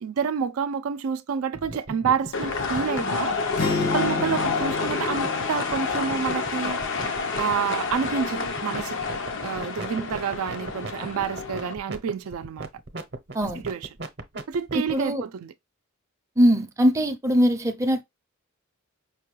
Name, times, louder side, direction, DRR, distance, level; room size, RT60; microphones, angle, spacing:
voice 1, 0.0-3.3 3.9-6.8 7.4-9.0 9.4-12.7 13.4-13.9 14.5-15.5, right 6 dB, 75° right, 0.4 m, -28 dB
sound 1, 1.5-14.9, right 2 dB, 55° right, 0.7 m, -37 dB
sound 2, 2.3-11.7, left 4 dB, 60° left, 0.6 m, -29 dB
sound 3, 3.6-7.7, left 4 dB, 80° left, 1.5 m, -32 dB
voice 2, 14.7-15.2 16.4-18.0, equal, 15° right, 0.5 m, -21 dB
5.2 x 2.2 x 3.1 m
head